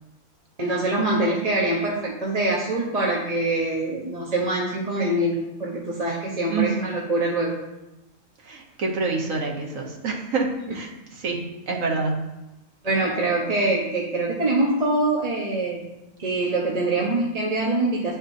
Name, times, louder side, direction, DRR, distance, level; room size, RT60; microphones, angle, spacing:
voice 1, 0.6-7.5 12.8-15.8 16.2-18.1, right 2 dB, 35° right, -4 dB, 1.0 m, -24 dB
voice 2, 8.4-10.9 11.2-12.3, right 4 dB, 85° right, 0 dB, 1.6 m, -27 dB
10.5 x 6.3 x 2.7 m, 0.96 s
omnidirectional pair, 1.3 m